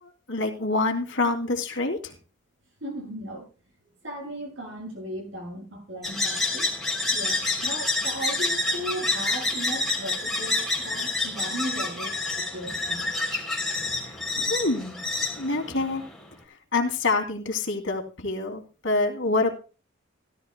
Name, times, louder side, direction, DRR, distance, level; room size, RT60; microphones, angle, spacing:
voice 1, 0.0-2.1 14.3-15.0 15.4-16.0 16.7-19.5, left 3 dB, 70° left, 2.8 m, -26 dB
voice 2, 2.8-3.5 4.0-6.7 7.1-13.1, right 1 dB, 70° right, 7.0 m, -36 dB
sound 1, 6.0-16.2, left 2 dB, ahead, 3.3 m, -28 dB
17.0 x 13.0 x 2.2 m
head